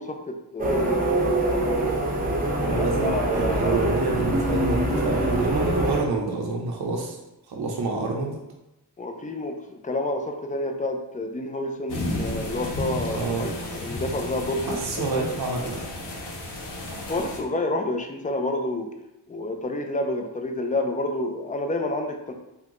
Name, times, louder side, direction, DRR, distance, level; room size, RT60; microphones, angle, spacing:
voice 1, 0.0-1.9 2.7-3.8 9.0-15.3 17.1-18.9 19.3-22.3, left 2 dB, 20° left, 4 dB, 0.4 m, -29 dB
sound 1, 0.6-6.0, right 1 dB, 20° right, 0.7 m, -24 dB
voice 2, 2.6-7.2 7.5-8.4 13.1-13.5 14.7-15.8, right 3 dB, 65° right, 0 dB, 0.6 m, -28 dB
sound 2, 11.9-17.4, left 1 dB, 75° left, 0.8 m, -33 dB
3.5 x 2.2 x 2.9 m, 0.94 s
cardioid pair, 50°, 42 cm